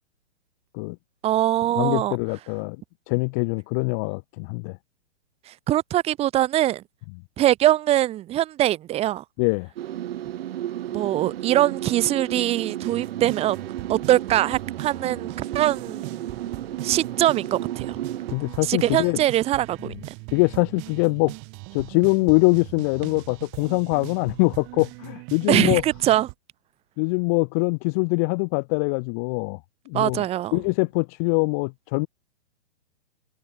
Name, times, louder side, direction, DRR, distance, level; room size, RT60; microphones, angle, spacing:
voice 1, 1.2-2.2 5.7-6.8 7.4-9.2 10.9-13.6 13.9-16.3 16.8-18.0 18.6-19.9 25.5-26.3 29.9-30.6, right 13 dB, 15° right, 0.9 m, -22 dB
voice 2, 1.7-2.8 3.1-4.8 9.4-9.7 18.3-19.2 20.3-21.3 21.7-25.8 27.0-29.6 29.9-30.2 30.5-32.1, left 34 dB, 15° left, 0.4 m, -23 dB
sound 1, 9.8-18.4, right 12 dB, 55° right, 5.7 m, -33 dB
sound 2, 12.8-26.3, right 39 dB, 35° right, 3.3 m, -40 dB
hypercardioid pair, 130°, 35 cm